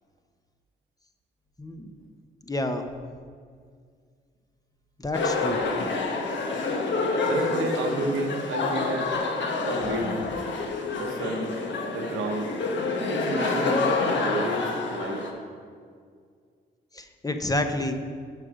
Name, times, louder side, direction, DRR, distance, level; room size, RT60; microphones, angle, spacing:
voice 1, 1.6-1.9 2.4-2.9 5.0-5.6 16.9-18.0, left 1 dB, 20° left, 6 dB, 0.8 m, -29 dB
sound 1, 5.1-15.3, left 3 dB, 65° left, 1.1 m, -28 dB
voice 2, 7.2-9.2 9.6-10.2 10.9-11.5 11.9-12.5 13.1-15.2, right 2 dB, 80° right, 2 dB, 1.1 m, -30 dB
6.5 x 5.0 x 6.1 m, 2.1 s
supercardioid pair, 50°, 20 cm